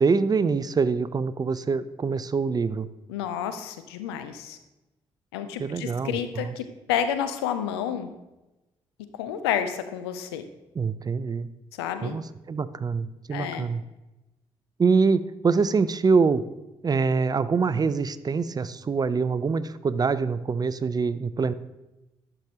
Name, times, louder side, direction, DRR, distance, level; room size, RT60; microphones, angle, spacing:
voice 1, 0.0-2.9 5.6-6.5 10.8-11.5 12.0-13.8 14.8-16.4 16.8-21.5, right 5 dB, 30° right, 15 dB, 0.4 m, -24 dB
voice 2, 3.1-4.6 5.3-8.1 9.1-10.4 11.7-12.2 13.3-13.7, left 9 dB, 90° left, 10 dB, 0.4 m, -30 dB
11.5 x 4.9 x 2.8 m, 0.99 s
hypercardioid pair, 45°, 13 cm